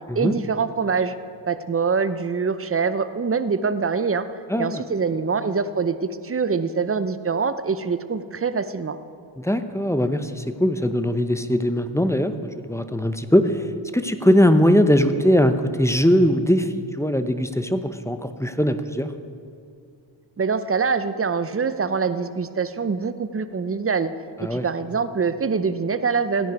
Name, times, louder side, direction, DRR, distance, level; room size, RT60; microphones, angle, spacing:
voice 1, 0.2-1.2 1.5-4.3 4.6-9.0 20.4-24.1 24.4-26.5, right 5 dB, 30° right, 12 dB, 0.7 m, -24 dB
voice 2, 4.5-4.8 9.4-13.7 13.9-19.1 24.4-24.6, equal, 5° left, 9 dB, 0.7 m, -20 dB
16.0 x 10.0 x 4.7 m, 2.5 s
cardioid pair, 60°, 49 cm